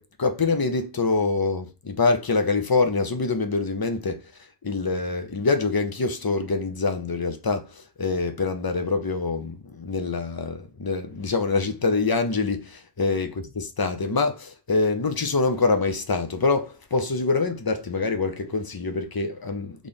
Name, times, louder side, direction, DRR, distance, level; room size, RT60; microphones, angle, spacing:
voice 1, 0.0-4.3 4.6-19.9, left 3 dB, 30° left, 0.4 m, -25 dB
4.2 x 3.2 x 3.5 m
omnidirectional pair, 1.1 m